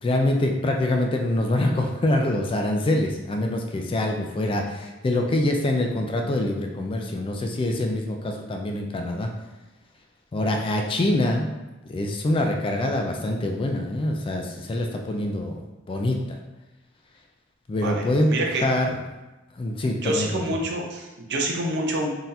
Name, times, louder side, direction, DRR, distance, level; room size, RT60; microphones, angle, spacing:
voice 1, 0.0-9.3 10.3-11.5 11.9-15.6 15.9-16.2 17.7-18.3 18.6-19.0 19.6-20.4, left 1 dB, 25° left, 2 dB, 0.3 m, -25 dB
voice 2, 17.8-18.6 20.0-22.1, right 1 dB, 55° right, 0 dB, 0.6 m, -27 dB
3.8 x 2.8 x 2.6 m, 1.1 s
head